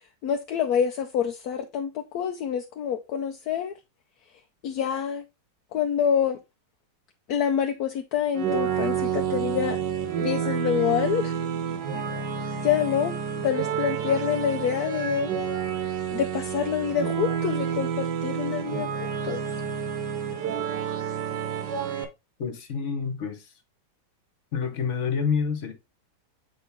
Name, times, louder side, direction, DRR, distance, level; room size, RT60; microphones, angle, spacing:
voice 1, 0.2-3.7 4.6-5.2 5.7-6.4 7.3-9.8 10.2-11.3 11.9-12.1 12.6-13.2 13.4-15.3 16.1-18.9 19.2-19.4, left 8 dB, 70° left, 1.1 m, -26 dB
sound 1, 8.3-22.0, right 7 dB, 80° right, 1.7 m, -29 dB
voice 2, 22.4-23.5 24.5-25.7, left 6 dB, 45° left, 1.4 m, -28 dB
7.4 x 4.3 x 3.5 m
omnidirectional pair, 1.8 m